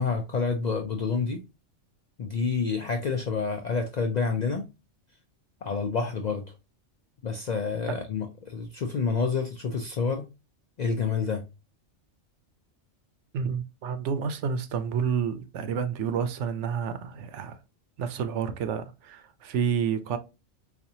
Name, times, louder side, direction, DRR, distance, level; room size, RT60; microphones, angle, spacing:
voice 1, 0.0-1.4 2.2-4.7 5.6-6.4 7.2-10.3 10.8-11.4, left 5 dB, 65° left, 0.4 m, -28 dB
voice 2, 13.3-17.6 18.0-20.2, right 7 dB, 80° right, 0.9 m, -29 dB
4.2 x 2.5 x 2.7 m
omnidirectional pair, 1.2 m